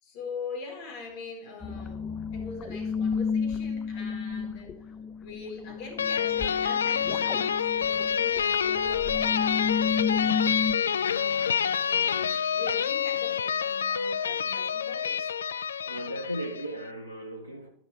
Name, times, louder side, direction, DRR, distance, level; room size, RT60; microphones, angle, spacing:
voice 1, 0.0-2.0 2.3-4.9 5.2-10.3 11.0-15.3, left 4 dB, 45° left, 4.4 m, -42 dB
sound 1, 1.6-10.7, left 5 dB, 25° left, 0.6 m, -32 dB
sound 2, 6.0-16.7, left 7 dB, 70° left, 0.3 m, -27 dB
voice 2, 15.9-17.7, equal, 85° right, 0.9 m, -36 dB
12.0 x 11.0 x 3.2 m
figure-of-eight pair, 90°, 0 cm